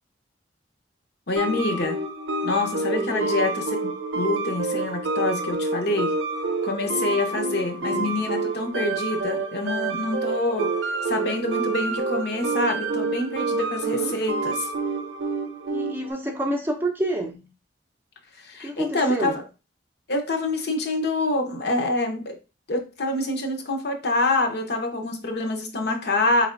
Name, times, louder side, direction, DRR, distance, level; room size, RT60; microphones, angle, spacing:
voice 1, 1.3-2.0 2.4-6.1 6.6-10.7 11.1-14.7 18.4-19.4 20.1-22.4 22.7-26.5, left 2 dB, 60° left, 4 dB, 0.8 m, -26 dB
sound 1, 1.4-16.1, right 3 dB, 80° right, 0.5 m, -28 dB
voice 2, 2.9-3.4 7.9-8.1 13.8-14.1 15.7-17.5 18.6-19.4, right 1 dB, 10° right, 3 dB, 0.6 m, -29 dB
4.1 x 3.3 x 2.5 m, 0.30 s
head